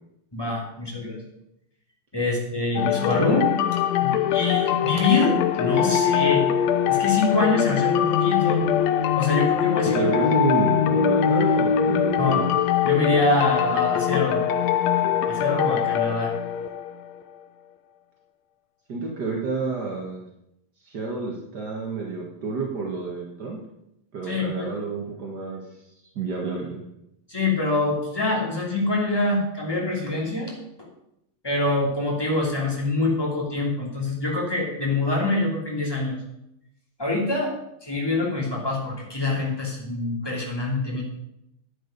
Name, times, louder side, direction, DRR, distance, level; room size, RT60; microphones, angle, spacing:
voice 1, 0.3-1.2 2.1-3.5 4.0-6.5 6.9-8.6 9.1-10.1 12.2-12.4 12.8-14.4 15.3-16.3 24.3-24.7 27.3-30.5 31.4-36.2 37.0-37.5 37.8-41.0, left 2 dB, 10° left, -2 dB, 2.2 m, -25 dB
sound 1, 2.8-17.2, left 9 dB, 85° left, 1.5 m, -22 dB
voice 2, 9.9-12.5 18.9-20.3 20.8-23.6 24.1-25.6 26.1-26.8, right 4 dB, 55° right, -1 dB, 1.1 m, -29 dB
10.5 x 9.0 x 5.2 m, 0.82 s
omnidirectional pair, 3.9 m